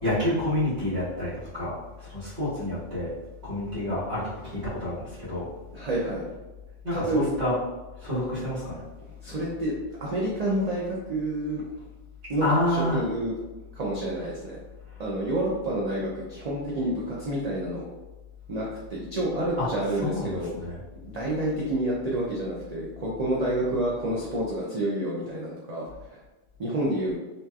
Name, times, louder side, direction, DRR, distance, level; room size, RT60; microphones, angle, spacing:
voice 1, 0.0-3.1 3.4-5.5 6.8-7.5 8.0-8.8 12.4-13.0 19.6-19.7 20.0-20.8, left 1 dB, 40° right, -14 dB, 1.3 m, -28 dB
voice 2, 5.7-6.2 6.9-7.3 9.2-9.7 10.0-11.6 12.3-13.3 13.7-14.6 15.0-17.8 18.5-20.5 21.0-26.2 26.6-27.1, right 1 dB, 55° right, -5 dB, 0.4 m, -29 dB
2.9 x 2.7 x 2.3 m, 1.1 s
omnidirectional pair, 1.3 m